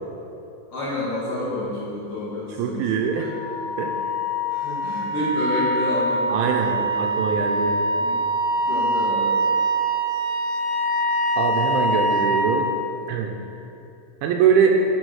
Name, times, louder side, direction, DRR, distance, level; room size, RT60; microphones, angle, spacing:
voice 1, 0.7-2.9 3.2-3.3 4.5-7.3 8.0-8.2 8.6-9.4, left 1 dB, 55° left, -8 dB, 2.5 m, -29 dB
voice 2, 2.6-3.3 3.8-3.9 6.3-7.8 11.4-12.7 13.1-13.4 14.2-14.8, right 6 dB, 80° right, 2 dB, 2.9 m, -22 dB
Wind instrument woodwind instrument, 3.1-12.6, right 1 dB, 90° left, 3.4 m, -24 dB
10.5 x 6.8 x 6.4 m, 2.9 s
omnidirectional pair, 5.8 m